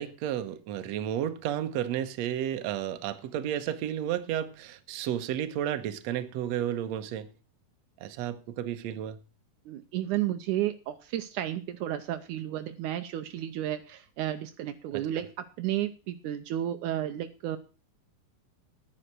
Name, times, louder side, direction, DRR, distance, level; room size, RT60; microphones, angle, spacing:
voice 1, 0.0-7.3 8.0-9.2 14.9-15.1, right 10 dB, 75° right, 1.6 m, -32 dB
voice 2, 9.7-17.6, right 12 dB, 90° right, 1.8 m, -32 dB
10.0 x 9.8 x 6.0 m
omnidirectional pair, 4.4 m